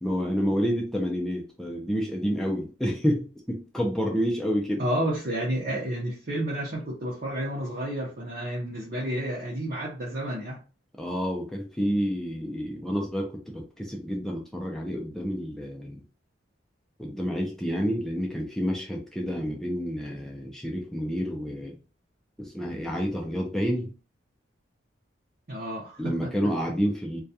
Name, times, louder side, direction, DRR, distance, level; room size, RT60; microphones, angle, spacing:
voice 1, 0.0-4.8 11.0-16.0 17.0-21.8 22.4-23.9 26.0-27.2, equal, ahead, -1 dB, 0.4 m, -29 dB
voice 2, 4.8-10.6 25.5-26.3, right 1 dB, 50° right, -6 dB, 0.7 m, -31 dB
2.3 x 2.2 x 2.6 m, 0.36 s
head